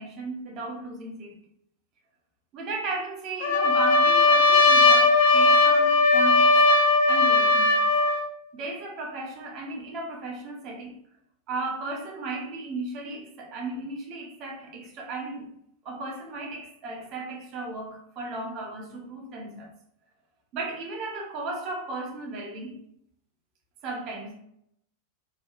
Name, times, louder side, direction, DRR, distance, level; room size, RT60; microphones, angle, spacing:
voice 1, 0.0-1.4 2.5-6.6 7.1-7.8 8.5-11.0 11.5-15.5 15.8-19.7 20.5-22.8 23.8-24.4, right 2 dB, 40° right, 0.7 m, -35 dB
Trumpet, 3.4-8.3, left 3 dB, 55° left, 0.3 m, -18 dB
3.3 x 2.2 x 2.4 m
figure-of-eight pair, 90°, 0 cm